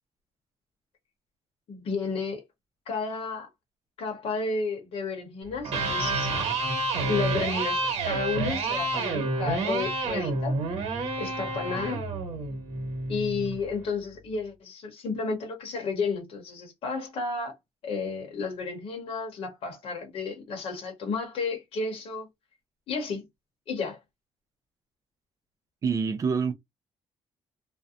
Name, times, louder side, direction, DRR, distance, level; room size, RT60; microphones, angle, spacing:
voice 1, 1.7-2.4 2.9-3.5 4.0-6.3 7.1-10.6 11.2-12.0 13.1-17.5 17.8-22.3 22.9-23.2 23.7-24.0, left 4 dB, 55° left, 0.8 m, -32 dB
Electric guitar, 5.5-13.6, right 2 dB, 65° right, 1.2 m, -29 dB
voice 2, 25.8-26.5, right 5 dB, 30° right, 0.4 m, -26 dB
2.4 x 2.1 x 2.7 m
cardioid pair, 175°, 11 cm